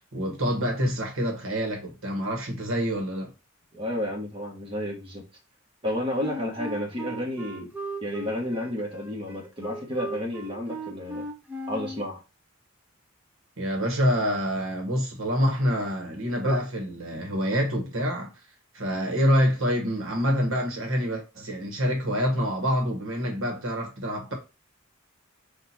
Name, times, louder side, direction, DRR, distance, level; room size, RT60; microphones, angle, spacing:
voice 1, 0.1-3.3 13.6-18.3 18.7-24.3, equal, 80° right, 1.2 m, -26 dB
voice 2, 3.7-5.2 5.8-7.7 8.0-11.2 11.7-12.2, left 1 dB, 25° right, 1.4 m, -31 dB
Wind instrument woodwind instrument, 6.2-12.1, right 1 dB, 10° right, 0.6 m, -37 dB
4.2 x 2.5 x 4.1 m
head